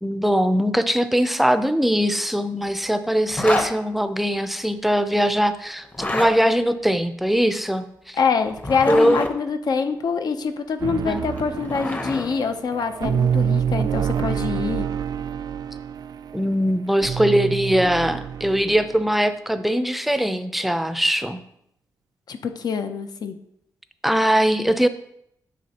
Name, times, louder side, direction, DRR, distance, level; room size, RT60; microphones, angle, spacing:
voice 1, 0.0-8.2 8.9-9.2 11.1-11.2 16.3-21.4 24.0-24.9, equal, ahead, 10 dB, 0.5 m, -21 dB
Zipper (clothing), 3.3-3.7 5.8-6.3 8.5-9.3 11.2-12.3, left 1 dB, 25° left, 0.9 m, -27 dB
voice 2, 8.1-14.9 22.3-23.3, left 5 dB, 65° left, 7 dB, 0.7 m, -25 dB
sound 1, 10.8-19.0, right 8 dB, 65° right, 0.4 m, -27 dB
9.1 x 6.4 x 2.9 m, 0.75 s
wide cardioid pair, 110°, 7 cm